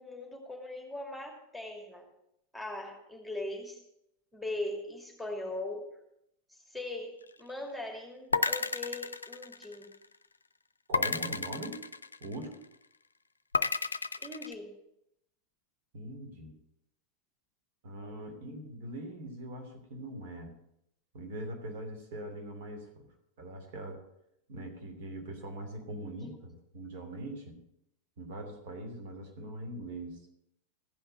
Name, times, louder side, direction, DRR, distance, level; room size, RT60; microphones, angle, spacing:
voice 1, 0.0-2.1 2.5-3.8 4.3-5.9 6.7-9.9 14.2-14.8 26.2-26.4, left 2 dB, ahead, 1 dB, 2.6 m, -40 dB
sound 1, 8.3-10.1 10.9-12.6 13.5-14.5, left 4 dB, 80° left, 0.5 m, -31 dB
voice 2, 10.9-11.8 12.2-12.6 15.9-16.5 17.8-20.5 21.1-23.1 23.4-24.0 24.5-27.6 28.2-30.2, right 1 dB, 55° right, 5 dB, 2.8 m, -42 dB
15.5 x 5.7 x 8.9 m, 0.79 s
figure-of-eight pair, 90°, 0 cm